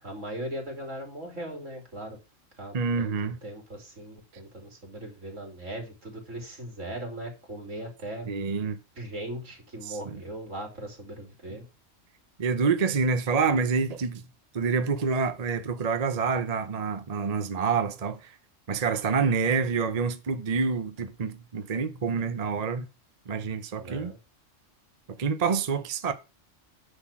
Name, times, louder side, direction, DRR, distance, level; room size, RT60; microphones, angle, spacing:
voice 1, 0.0-2.2 2.6-3.2 3.4-8.3 9.0-11.7 23.8-24.2, right 1 dB, 75° right, 3.7 m, -39 dB
voice 2, 2.7-3.4 8.3-8.8 9.8-10.2 12.4-14.3 14.5-18.4 18.7-22.9 23.3-24.1 25.2-26.1, right 5 dB, 35° right, 0.8 m, -27 dB
9.8 x 4.1 x 7.4 m
omnidirectional pair, 1.3 m